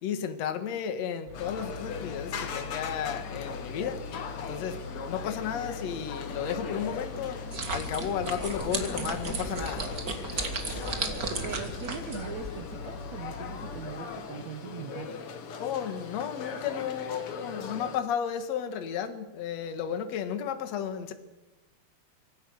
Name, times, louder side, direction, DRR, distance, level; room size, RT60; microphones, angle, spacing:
voice 1, 0.0-4.0 4.4-4.8 5.1-7.4 7.7-9.8 15.6-21.1, left 8 dB, 55° left, 8 dB, 2.1 m, -33 dB
sound 1, 1.3-18.0, left 6 dB, 75° left, 1.2 m, -39 dB
sound 2, 1.3-13.9, left 4 dB, 30° left, 7.1 m, -42 dB
sound 3, 7.5-12.6, right 3 dB, 40° right, 1.3 m, -34 dB
voice 2, 11.4-15.1, right 8 dB, 75° right, 7 dB, 1.6 m, -41 dB
26.0 x 18.0 x 6.5 m, 1.1 s
omnidirectional pair, 4.9 m